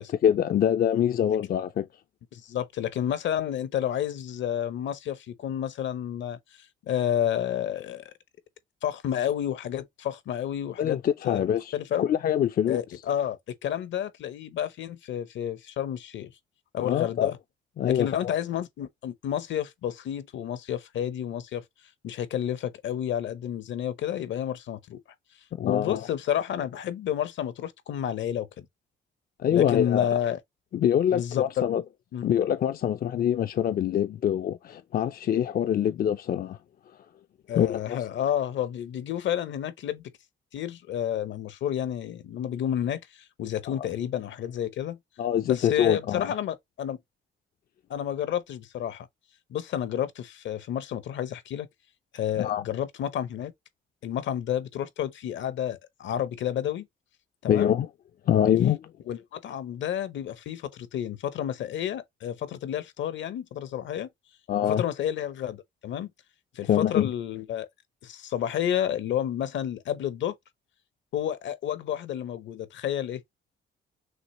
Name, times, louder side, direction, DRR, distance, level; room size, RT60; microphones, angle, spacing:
voice 1, 0.0-1.9 10.8-11.7 12.0-12.8 16.8-17.3 17.8-18.3 25.6-26.1 29.4-30.2 30.7-31.8 32.2-36.6 37.6-38.0 43.7-43.8 45.2-46.3 52.4-52.6 57.5-57.9 58.3-58.9 64.5-64.8 66.7-67.1, left 10 dB, 50° left, 0.4 m, -25 dB
voice 2, 2.3-6.4 6.8-8.0 8.8-11.0 11.2-12.1 12.7-16.3 16.7-17.4 17.8-21.6 22.0-25.0 25.6-28.7 29.5-30.4 31.1-31.7 32.1-32.2 37.5-40.1 40.5-45.0 45.4-47.0 47.9-49.1 49.5-51.7 52.1-53.5 54.0-56.9 57.4-57.7 59.1-64.1 64.6-66.1 66.6-67.7 68.0-70.4 71.1-73.2, left 10 dB, 70° left, 0.8 m, -30 dB
6.3 x 2.5 x 2.9 m
cardioid pair, 90°, 20 cm